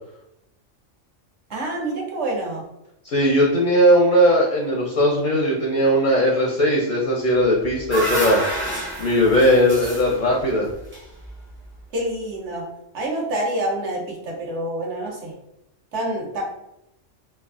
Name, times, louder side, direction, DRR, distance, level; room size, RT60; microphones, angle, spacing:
voice 1, 1.5-2.6 11.9-12.6 12.9-15.3 15.9-16.4, right 1 dB, 65° right, -1 dB, 1.1 m, -27 dB
voice 2, 3.0-8.4 9.0-10.7, equal, 55° left, -2 dB, 0.6 m, -18 dB
sound 1, 7.4-11.7, equal, 20° right, 0.3 m, -29 dB
3.1 x 2.3 x 2.4 m, 0.83 s
omnidirectional pair, 1.3 m